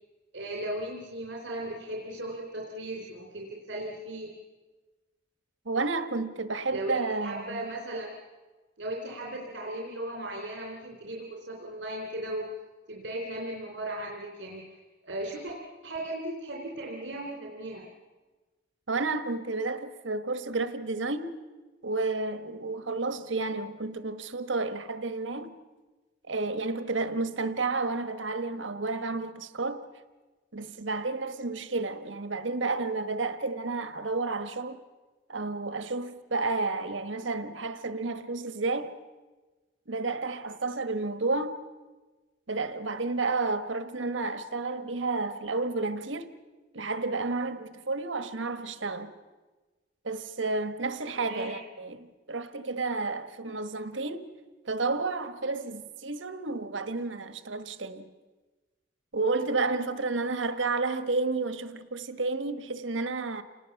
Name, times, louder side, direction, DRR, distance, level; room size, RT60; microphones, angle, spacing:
voice 1, 0.3-4.3 6.7-8.1 8.8-12.5 12.9-15.6 15.8-17.8 51.2-51.6, right 1 dB, 70° right, 3.4 m, -37 dB
voice 2, 5.6-7.6 18.9-21.4 21.8-25.6 26.3-29.8 30.5-34.8 35.3-39.0 39.9-41.6 42.5-46.3 46.7-49.2 50.0-54.2 54.7-58.1 59.1-63.4, right 3 dB, 90° right, 1.4 m, -31 dB
28.5 x 19.0 x 7.1 m
head